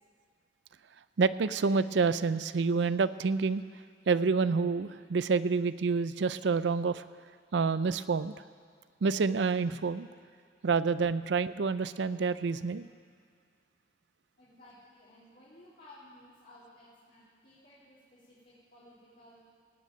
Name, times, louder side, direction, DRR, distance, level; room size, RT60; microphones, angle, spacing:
voice 1, 1.2-3.6 4.1-7.0 7.5-8.3 9.0-10.1 10.6-12.9, right 4 dB, 75° right, 15 dB, 0.4 m, -28 dB
voice 2, 14.4-19.4, left 1 dB, 50° left, -10 dB, 3.2 m, -56 dB
18.0 x 6.4 x 8.7 m, 2.2 s
head